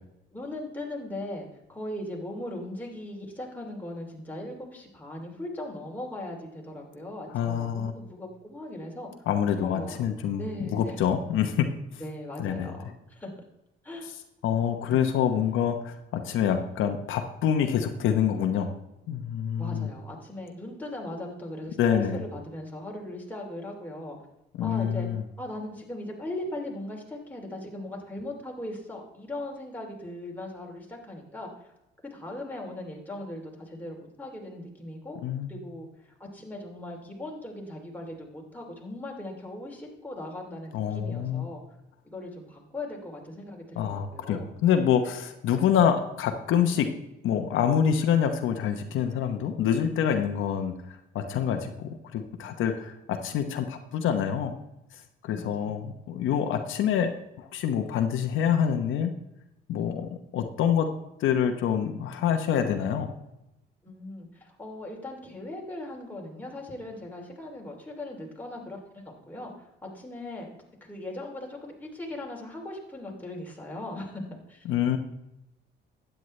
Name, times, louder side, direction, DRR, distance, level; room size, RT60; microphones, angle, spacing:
voice 1, 0.3-9.1 9.6-10.0 10.4-11.0 12.0-13.3 13.8-14.1 14.8-15.1 19.6-24.2 24.6-25.1 25.4-31.7 32.0-35.2 35.5-41.6 42.0-44.6 55.2-56.0 63.8-74.6, left 1 dB, 10° left, -1 dB, 2.9 m, -39 dB
voice 2, 7.3-7.9 9.3-11.7 12.4-12.7 14.4-18.8 19.1-19.9 21.8-22.2 24.6-25.2 35.2-35.5 40.7-41.5 43.8-46.9 47.2-54.5 55.2-57.1 57.4-59.1 59.7-60.9 61.2-63.1 74.7-75.0, left 8 dB, 85° left, 5 dB, 1.0 m, -26 dB
12.0 x 9.3 x 3.2 m, 0.88 s
cardioid pair, 90°, 20 cm